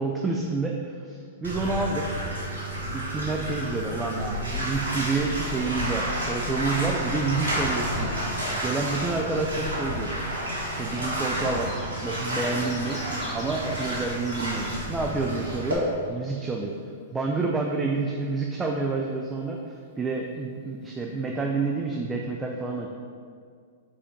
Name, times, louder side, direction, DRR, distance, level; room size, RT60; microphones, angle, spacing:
voice 1, 0.0-2.0 2.9-10.2 10.8-11.7 12.0-13.0 13.3-16.7 17.1-19.6 20.0-22.9, right 3 dB, 15° right, 0 dB, 0.6 m, -29 dB
Bathtub (filling or washing), 1.4-15.7, right 1 dB, 90° right, 1.7 m, -30 dB
sound 1, 11.0-14.8 15.2-15.3 15.6-16.7 20.5-20.6 20.8-20.9, left 1 dB, 15° left, 1.6 m, -46 dB
5.0 x 4.3 x 5.1 m, 2.1 s
hypercardioid pair, 110°, 0 cm